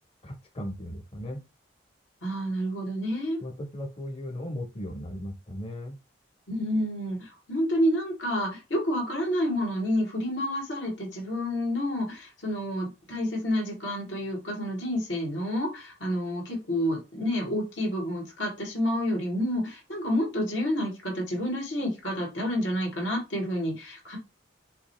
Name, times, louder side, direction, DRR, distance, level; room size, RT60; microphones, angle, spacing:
voice 1, 0.2-1.4 3.4-6.0, equal, 30° left, 4 dB, 0.6 m, -37 dB
voice 2, 2.2-3.4 6.5-24.2, equal, 90° left, 0 dB, 2.1 m, -29 dB
5.6 x 2.2 x 4.2 m, 0.27 s
head